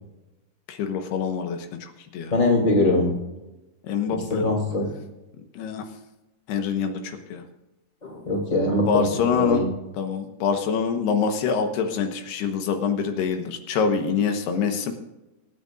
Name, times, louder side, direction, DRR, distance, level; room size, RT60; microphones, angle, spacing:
voice 1, 0.7-2.3 3.8-4.6 5.5-5.8 6.5-7.4 8.9-9.6 10.0-14.9, left 6 dB, 80° left, 5 dB, 3.1 m, -25 dB
voice 2, 2.3-3.1 4.3-4.8 8.0-9.0 9.4-9.7, left 2 dB, 10° left, 0 dB, 2.5 m, -22 dB
25.0 x 9.4 x 2.5 m, 1.0 s
omnidirectional pair, 4.8 m